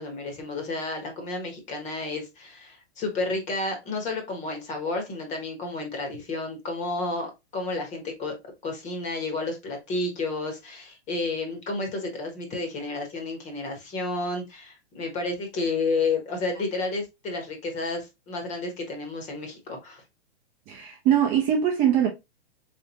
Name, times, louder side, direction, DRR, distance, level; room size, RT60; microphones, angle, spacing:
voice 1, 0.0-8.3 8.6-20.0, left 3 dB, 20° left, 1.1 m, -31 dB
voice 2, 20.7-22.1, right 9 dB, 25° right, 0.6 m, -22 dB
3.5 x 3.3 x 2.8 m
hypercardioid pair, 150°, 33 cm